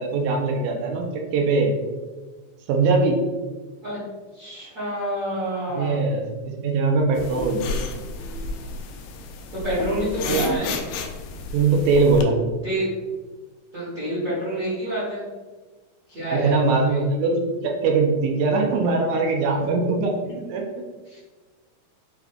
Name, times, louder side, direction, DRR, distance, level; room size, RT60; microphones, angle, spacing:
voice 1, 0.0-1.7 2.7-3.2 5.8-7.6 10.3-10.6 11.5-12.4 16.3-20.2 20.5-20.8, right 3 dB, 85° right, 1 dB, 1.7 m, -21 dB
voice 2, 4.3-6.0 9.5-10.7 12.6-12.9 13.7-15.2 16.1-17.0 21.1-21.2, right 1 dB, 50° right, -11 dB, 1.1 m, -28 dB
sound 1, 7.2-12.2, left 3 dB, 90° left, 1.8 m, -32 dB
6.3 x 2.2 x 3.5 m, 1.3 s
omnidirectional pair, 4.3 m